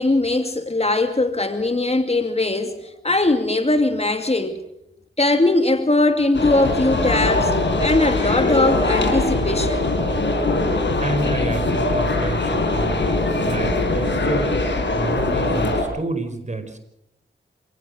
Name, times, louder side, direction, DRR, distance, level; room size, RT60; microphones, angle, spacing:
voice 1, 0.0-4.6 5.2-7.5 7.8-9.9, left 2 dB, 30° left, 2.4 m, -20 dB
sound 1, 6.3-15.8, left 2 dB, 65° left, 6.2 m, -21 dB
voice 2, 11.0-14.5 14.9-16.8, right 2 dB, 35° right, 4.8 m, -29 dB
27.5 x 18.0 x 6.6 m
cardioid pair, 50°, 20 cm